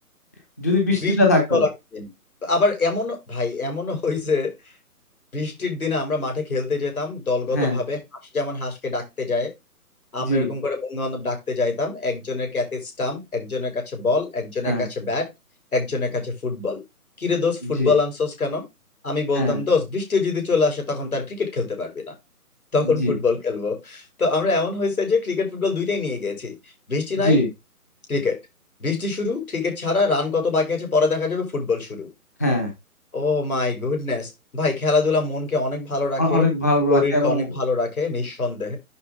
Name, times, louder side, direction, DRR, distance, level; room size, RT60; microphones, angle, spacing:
voice 1, 0.6-1.6 7.5-7.8 10.2-10.5 14.6-14.9 17.8-17.9 19.3-19.6 22.8-23.1 27.2-27.5 32.4-32.7 36.2-37.5, left 1 dB, 10° left, 3 dB, 0.7 m, -21 dB
voice 2, 1.5-2.1 2.4-4.5 5.3-8.0 8.3-9.5 10.1-15.3 15.7-16.8 17.2-18.6 19.0-22.1 22.7-26.5 26.9-27.4 28.1-28.4 28.8-32.1 33.1-36.5 36.9-38.8, left 3 dB, 65° left, 3 dB, 4.9 m, -24 dB
11.0 x 4.2 x 3.5 m, 0.21 s
figure-of-eight pair, 140°, 46 cm